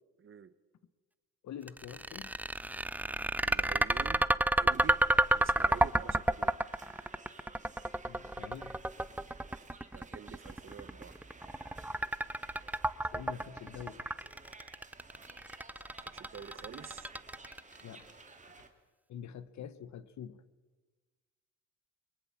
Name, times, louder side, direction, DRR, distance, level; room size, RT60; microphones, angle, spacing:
voice 1, 0.2-0.5 3.4-4.3 4.6-5.0 5.3-6.6 9.9-11.2 16.0-17.1, right 7 dB, 40° right, 15 dB, 1.1 m, -48 dB
voice 2, 1.4-2.3 8.1-8.8 13.0-14.0 17.8-18.1 19.1-20.4, left 9 dB, 65° left, 16 dB, 1.2 m, -46 dB
sound 1, 1.7-17.8, right 1 dB, 5° right, 0.6 m, -30 dB
sound 2, 4.7-18.7, right 3 dB, 25° right, 2.7 m, -55 dB
23.0 x 21.5 x 7.5 m, 1.3 s
cardioid pair, 90°, 30 cm